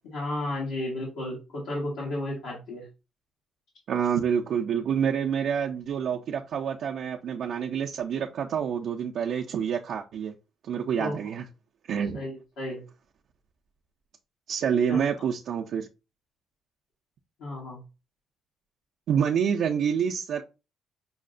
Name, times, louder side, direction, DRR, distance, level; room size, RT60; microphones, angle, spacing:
voice 1, 0.0-2.8 11.0-11.1 12.1-12.8 14.9-15.0 17.4-17.8, left 1 dB, 90° left, 1.3 m, -33 dB
voice 2, 3.9-10.3 10.6-11.5 11.9-12.2 14.5-15.9 19.1-20.4, right 7 dB, 70° right, 0.4 m, -27 dB
5.4 x 2.1 x 2.5 m
cardioid pair, 90°, 0 cm